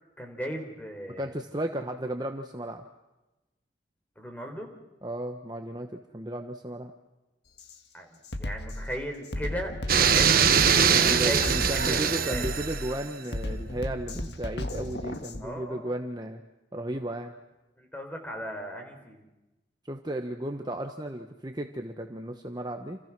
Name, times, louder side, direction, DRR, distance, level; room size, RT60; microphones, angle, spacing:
voice 1, 0.2-1.3 4.2-4.7 7.9-11.4 11.7-12.5 15.4-15.9 17.8-19.2, equal, 10° left, 3 dB, 4.4 m, -37 dB
voice 2, 1.2-2.8 5.0-6.9 10.9-16.4 16.7-17.3 19.8-23.0, right 1 dB, 20° right, 4 dB, 1.2 m, -34 dB
Drum kit, 7.6-7.8 8.2-15.4, left 1 dB, 65° left, 1.8 m, -35 dB
sound 1, 9.9-13.0, right 7 dB, 50° right, 1.3 m, -22 dB
29.5 x 28.5 x 6.2 m, 1.0 s
head